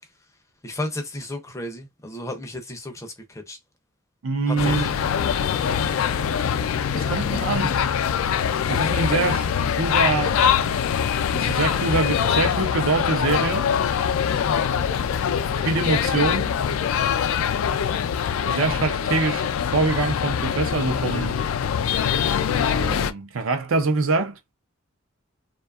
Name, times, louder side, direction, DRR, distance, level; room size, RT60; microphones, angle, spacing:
voice 1, 0.6-3.6 4.5-4.8, left 1 dB, 15° left, 0.4 m, -33 dB
voice 2, 4.2-4.9 6.9-7.9 8.7-10.4 11.3-13.7 15.6-16.6 18.4-21.4 22.7-24.4, right 3 dB, 80° right, 0.6 m, -24 dB
sound 1, 4.6-23.1, left 8 dB, 85° left, 0.3 m, -23 dB
2.7 x 2.3 x 2.3 m
head